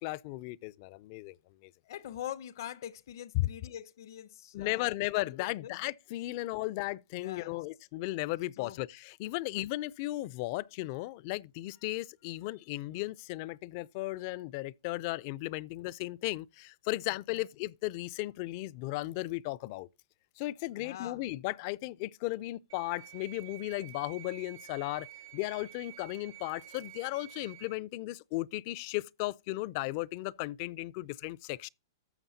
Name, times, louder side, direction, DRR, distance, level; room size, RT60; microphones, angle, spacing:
voice 1, 0.0-1.4 1.6-1.7 3.3-3.5 4.5-19.9 20.4-25.1 25.3-31.7, left 19 dB, 45° left, 0.4 m, -35 dB
voice 2, 1.9-5.0 5.4-5.7 7.2-7.6 8.6-8.8 17.3-17.4 20.8-21.2, left 11 dB, 65° left, 0.7 m, -43 dB
sound 1, 22.7-27.7, right 16 dB, 55° right, 0.7 m, -50 dB
13.0 x 6.9 x 2.7 m
hypercardioid pair, 135°, 2 cm